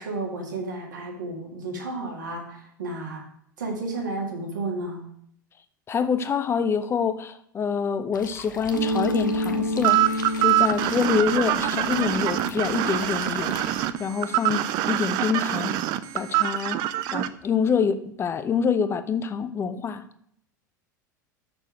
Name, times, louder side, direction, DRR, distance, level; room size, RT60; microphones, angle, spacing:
voice 1, 0.0-3.2 3.6-5.1, right 2 dB, 70° right, 1 dB, 1.9 m, -32 dB
voice 2, 5.9-13.6 14.0-15.8 16.1-16.8 17.1-20.0, left 6 dB, 25° left, 12 dB, 0.6 m, -26 dB
sound 1, 8.1-13.8, left 5 dB, 75° left, 0.8 m, -42 dB
Mallet percussion, 8.7-14.2, left 1 dB, 85° right, 2.1 m, -30 dB
sound 2, 9.8-17.3, right 14 dB, 40° right, 0.4 m, -24 dB
6.4 x 6.1 x 5.0 m, 0.68 s
figure-of-eight pair, 80°, 10 cm